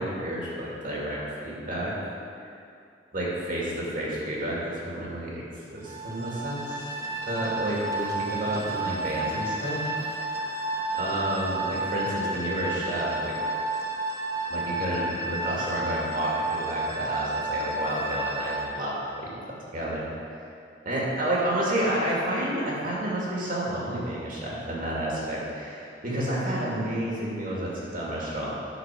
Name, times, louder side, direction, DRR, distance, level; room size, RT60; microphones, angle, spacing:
voice 1, 0.0-1.9 2.4-2.5 3.1-5.4 5.7-9.8 10.1-10.6 11.0-13.4 14.5-19.3 19.7-20.1 20.4-20.5 20.8-28.6, right 1 dB, 50° right, -5 dB, 2.3 m, -30 dB
sound 1, 5.8-18.6, right 2 dB, 20° right, 1.1 m, -31 dB
11.0 x 4.8 x 6.3 m, 2.5 s
head